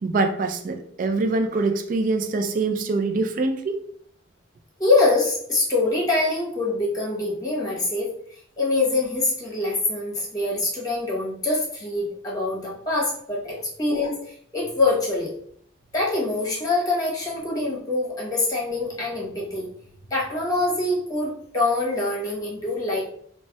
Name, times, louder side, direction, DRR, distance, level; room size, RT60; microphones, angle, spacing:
voice 1, 0.0-3.8 13.5-13.6, right 3 dB, 45° right, 6 dB, 0.3 m, -24 dB
voice 2, 4.8-15.3 15.9-19.7 20.1-23.0, left 2 dB, 20° left, -5 dB, 0.9 m, -24 dB
4.1 x 2.1 x 2.2 m, 0.63 s
head